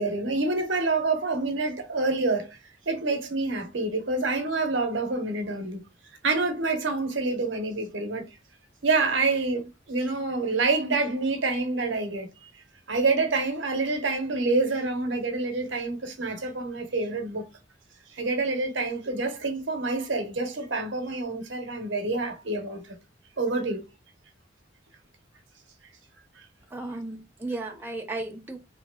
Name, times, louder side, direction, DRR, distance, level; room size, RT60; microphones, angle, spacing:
voice 1, 0.0-2.6 2.9-5.8 6.2-8.3 8.8-12.3 12.9-17.5 18.1-23.0 23.4-23.9, right 3 dB, 75° right, 0.9 m, -27 dB
voice 2, 26.7-28.6, right 2 dB, 10° right, 0.5 m, -34 dB
3.2 x 2.8 x 2.2 m
head